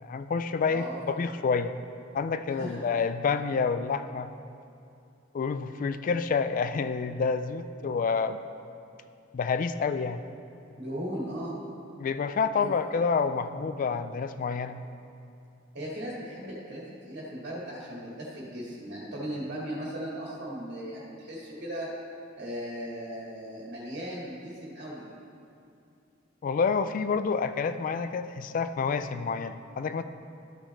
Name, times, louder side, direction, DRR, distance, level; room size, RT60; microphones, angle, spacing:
voice 1, 0.0-1.7 2.1-4.3 5.3-8.4 9.3-10.2 12.0-14.8 26.4-30.0, left 5 dB, 40° left, 11 dB, 0.3 m, -28 dB
voice 2, 0.6-1.0 2.6-3.0 10.8-11.6 12.6-12.7 15.7-21.9 22.4-25.1, equal, 55° right, -6 dB, 2.0 m, -37 dB
13.5 x 6.0 x 3.2 m, 2.6 s
head